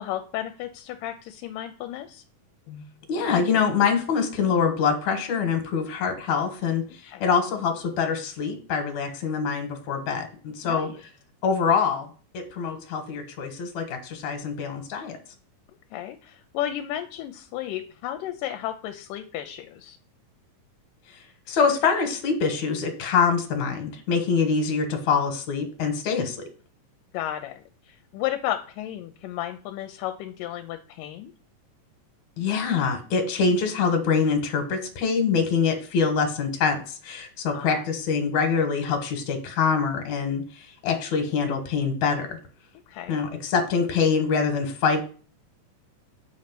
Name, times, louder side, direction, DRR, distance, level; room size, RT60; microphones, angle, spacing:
voice 1, 0.0-2.2 6.9-7.3 10.6-11.0 15.9-20.0 27.1-31.3 37.5-37.8 42.9-43.2, left 12 dB, 80° left, 7 dB, 2.2 m, -33 dB
voice 2, 3.1-6.8 7.2-10.3 10.6-10.9 11.4-12.1 12.3-15.2 21.5-26.4 32.4-42.4 43.1-45.0, left 5 dB, 65° left, 4 dB, 2.4 m, -24 dB
7.9 x 4.3 x 5.9 m, 0.39 s
omnidirectional pair, 3.9 m